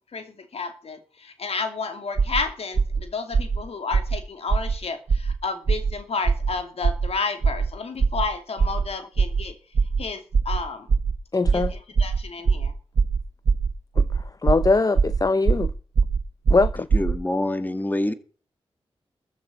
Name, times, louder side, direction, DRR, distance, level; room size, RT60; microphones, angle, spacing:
voice 1, 0.1-9.6 10.0-10.9 11.5-12.7, left 4 dB, 75° left, 2.6 m, -31 dB
sound 1, 2.2-2.4 2.8-3.0 3.3-3.6 3.9-4.2 4.5-4.7 5.1-5.3 5.7-5.9 6.3-6.5 6.8-7.1 7.4-7.7 8.0-8.2 8.6-8.8 9.2-9.4 9.7-10.0 10.3-10.6 10.9-11.1 11.5-11.7 12.0-12.2 12.5-12.7 13.0-13.2 13.5-13.7 14.0-14.2 14.5-14.7 15.0-15.2 15.5-15.7 16.0-16.2 16.5-17.1, right 5 dB, 75° right, 1.3 m, -21 dB
voice 2, 11.3-11.7 14.0-15.7 16.5-16.9, left 3 dB, 35° left, 0.7 m, -22 dB
voice 3, 16.9-18.1, left 1 dB, 15° left, 2.0 m, -25 dB
14.0 x 7.1 x 7.9 m
cardioid pair, 70°, 10 cm